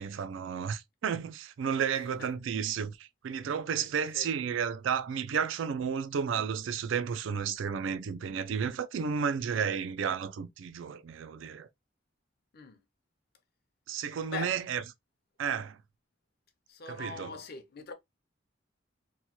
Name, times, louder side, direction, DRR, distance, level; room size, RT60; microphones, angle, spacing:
voice 1, 0.0-11.7 13.9-14.8 15.4-15.8 16.9-17.4, right 7 dB, 80° right, 0.4 m, -32 dB
voice 2, 16.7-17.9, left 5 dB, 55° left, 0.6 m, -41 dB
3.0 x 2.2 x 2.7 m
head